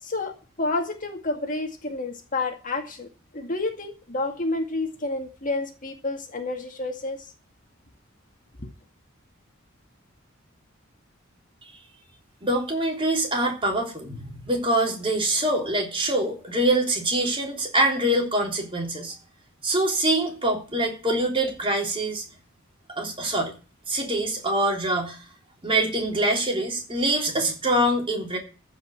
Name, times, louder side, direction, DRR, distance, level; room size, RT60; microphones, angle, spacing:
voice 1, 0.0-3.1 3.3-7.3 8.6-8.7, left 2 dB, 40° left, 2.0 m, -30 dB
voice 2, 12.4-19.1 19.6-22.2 22.9-23.5 23.9-25.2 25.6-28.4, right 1 dB, 25° right, 3.4 m, -24 dB
14.5 x 5.4 x 8.9 m
head